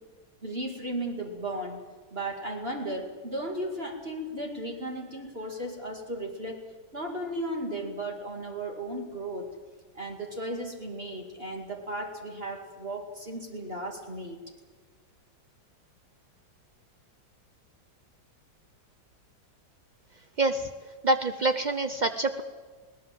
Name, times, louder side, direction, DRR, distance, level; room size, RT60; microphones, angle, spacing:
voice 1, 0.4-1.8 2.1-6.7 6.9-9.5 9.9-14.4, right 1 dB, 30° right, 1 dB, 2.5 m, -35 dB
voice 2, 20.4-20.7 21.0-22.4, right 2 dB, 85° right, 9 dB, 0.4 m, -26 dB
21.0 x 18.5 x 7.7 m, 1.5 s
omnidirectional pair, 2.0 m